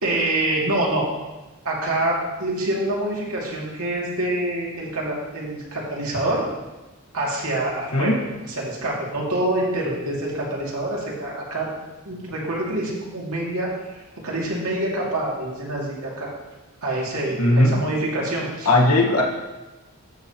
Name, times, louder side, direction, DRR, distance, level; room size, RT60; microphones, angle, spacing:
voice 1, 0.0-1.1 1.6-6.4 7.1-8.2 8.4-11.7 12.0-13.7 14.2-16.3 16.8-18.7, right 1 dB, 80° right, -4 dB, 2.4 m, -26 dB
voice 2, 17.4-17.8 18.6-19.2, left 1 dB, 85° left, -1 dB, 1.4 m, -17 dB
13.0 x 6.8 x 2.9 m, 1.1 s
head